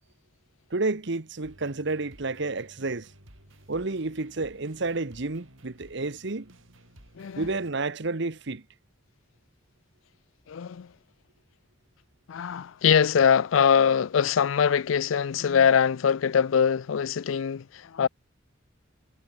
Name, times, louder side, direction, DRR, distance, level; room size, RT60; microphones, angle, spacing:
voice 1, 0.7-3.1 3.7-6.5 7.3-8.6, right 3 dB, 65° right, 1.2 m, -30 dB
sound 1, 1.4-7.7, right 1 dB, 85° right, 6.0 m, -54 dB
voice 2, 7.2-7.5 10.5-10.9 12.3-18.1, left 7 dB, 90° left, 0.4 m, -23 dB
head